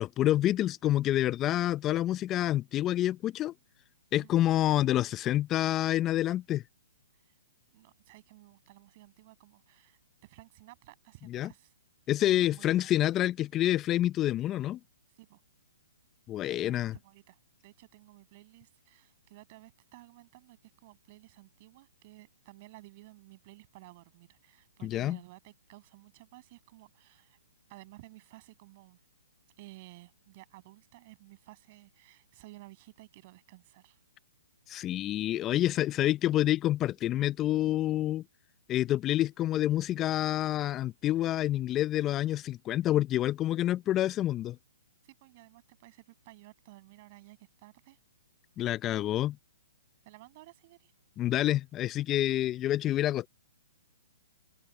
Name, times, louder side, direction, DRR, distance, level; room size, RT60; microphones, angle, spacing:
voice 1, 0.0-3.5 4.1-6.6 11.3-11.5 12.1-14.8 16.3-16.9 24.8-25.2 34.7-38.2 38.7-44.6 48.6-49.4 51.2-53.3, left 13 dB, 25° left, 0.6 m, -28 dB
voice 2, 4.2-4.5 7.1-7.4 7.7-11.7 12.2-12.9 15.1-15.4 16.5-27.4 27.7-29.0 29.6-34.0 45.0-48.0 50.0-50.9, right 21 dB, 40° right, 7.3 m, -54 dB
hypercardioid pair, 130°, 0 cm